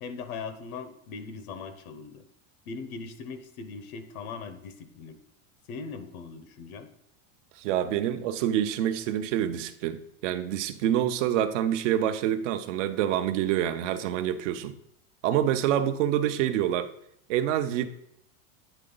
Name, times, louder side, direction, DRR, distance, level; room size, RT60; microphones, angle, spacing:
voice 1, 0.0-2.2 2.7-5.2 5.7-6.9, left 5 dB, 90° left, 9 dB, 1.0 m, -40 dB
voice 2, 7.6-14.7 15.2-16.9 17.3-17.9, right 11 dB, 60° right, 11 dB, 0.6 m, -27 dB
9.0 x 3.7 x 3.8 m, 0.71 s
supercardioid pair, 170°, 41 cm